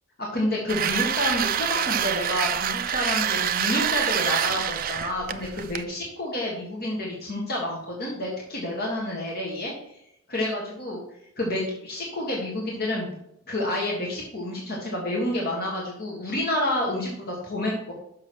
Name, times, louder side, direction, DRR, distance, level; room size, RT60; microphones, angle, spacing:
voice 1, 0.2-10.0 10.3-11.0 11.4-13.2 13.5-17.9, left 1 dB, 50° left, -3 dB, 1.6 m, -29 dB
sound 1, 0.7-5.8, right 9 dB, 45° right, 0.4 m, -26 dB
6.5 x 5.9 x 4.6 m, 0.77 s
head